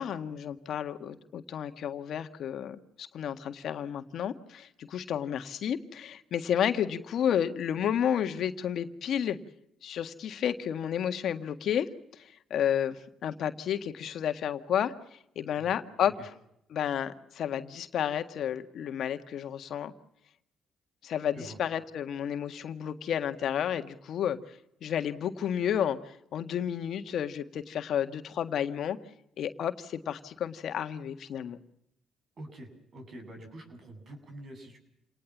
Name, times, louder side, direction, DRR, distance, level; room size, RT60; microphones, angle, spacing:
voice 1, 0.0-9.4 9.8-16.3 16.7-19.9 21.0-29.0 29.4-31.6, left 9 dB, 65° left, 8 dB, 1.7 m, -31 dB
voice 2, 32.4-34.8, right 1 dB, 50° right, 6 dB, 8.0 m, -46 dB
28.5 x 19.0 x 7.3 m, 0.78 s
supercardioid pair, 65°, 0 cm